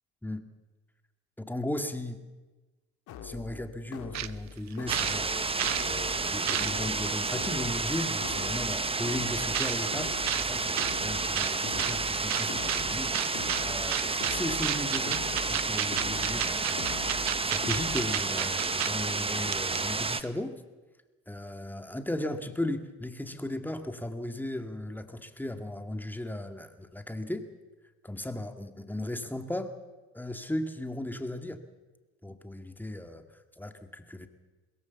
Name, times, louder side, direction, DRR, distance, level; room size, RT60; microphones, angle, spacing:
voice 1, 1.4-2.2 3.2-15.2 15.5-20.6 21.3-27.5 28.0-29.7 30.1-31.6 32.2-34.3, left 1 dB, 5° left, 7 dB, 2.1 m, -36 dB
sound 1, 3.1-18.0, left 7 dB, 65° left, 2.3 m, -43 dB
sound 2, 4.1-4.3 4.7-5.9 6.2-7.0 7.8-7.9 9.5-9.8 10.3-10.5 10.8-10.9 11.4-12.0 12.3-12.8 13.1-13.6 13.9-14.4 14.6-18.9 19.2-19.3 19.5-20.0, right 13 dB, 55° right, 0.9 m, -31 dB
sound 3, 4.9-20.2, right 4 dB, 15° right, 1.0 m, -31 dB
22.0 x 17.0 x 7.1 m, 1.2 s
supercardioid pair, 75°, 32 cm